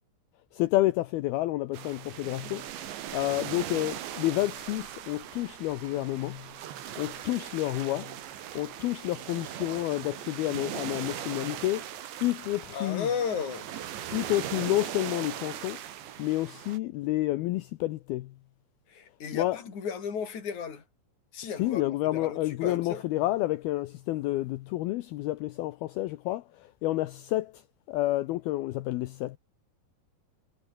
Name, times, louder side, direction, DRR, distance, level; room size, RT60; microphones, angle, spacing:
voice 1, 0.5-2.6 3.1-6.5 7.0-8.1 8.5-11.9 12.2-13.1 14.1-15.8 16.2-18.3 19.3-19.6 21.6-27.6 27.9-29.4, left 17 dB, 80° left, 2.4 m, -29 dB
sound 1, 1.7-16.8, right 11 dB, 80° right, 4.5 m, -39 dB
voice 2, 12.7-13.7 18.9-20.8 21.3-23.0, left 6 dB, 45° left, 5.6 m, -34 dB
omnidirectional pair, 5.1 m